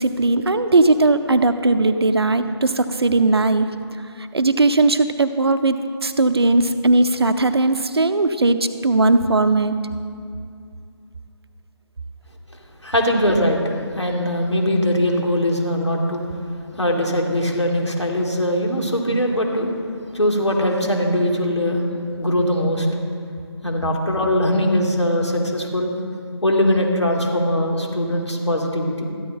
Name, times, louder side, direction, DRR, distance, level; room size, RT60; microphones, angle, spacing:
voice 1, 0.0-3.7 4.2-8.6 8.8-9.8, right 2 dB, 65° right, 10 dB, 0.7 m, -18 dB
voice 2, 12.8-16.3 16.8-19.7 20.1-21.8 22.2-22.9 23.6-25.9 26.4-29.1, equal, 80° left, 0 dB, 2.4 m, -21 dB
13.5 x 11.0 x 4.3 m, 2.4 s
figure-of-eight pair, 155°, 14 cm